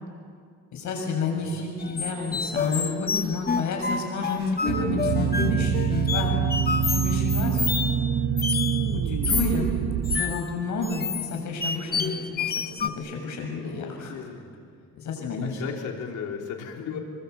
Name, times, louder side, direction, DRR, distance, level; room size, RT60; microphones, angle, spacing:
voice 1, 0.7-7.6 8.9-9.7 10.1-14.1 15.0-15.6, left 3 dB, 75° left, 2 dB, 7.3 m, -30 dB
voice 2, 1.4-1.7 13.6-14.6 15.4-17.0, left 7 dB, 90° left, 2 dB, 3.6 m, -36 dB
sound 1, 1.8-8.9 9.2-9.6 10.0-12.9, left 5 dB, 30° left, 1.4 m, -29 dB
sound 2, 4.7-10.2, right 8 dB, 80° right, 1.4 m, -25 dB
28.0 x 23.0 x 8.3 m, 2.2 s
cardioid pair, 90°, 30 cm